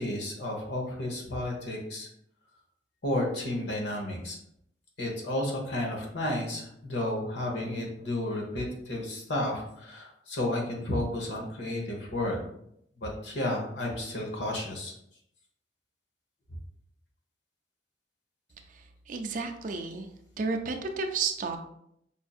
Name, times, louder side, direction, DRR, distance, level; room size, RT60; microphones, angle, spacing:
voice 1, 0.0-2.1 3.0-4.4 5.0-12.4 13.0-14.9, left 1 dB, 75° left, 0 dB, 1.0 m, -32 dB
voice 2, 18.7-20.1 20.4-21.6, right 4 dB, 45° right, 5 dB, 0.4 m, -32 dB
5.5 x 2.6 x 2.4 m, 0.74 s
head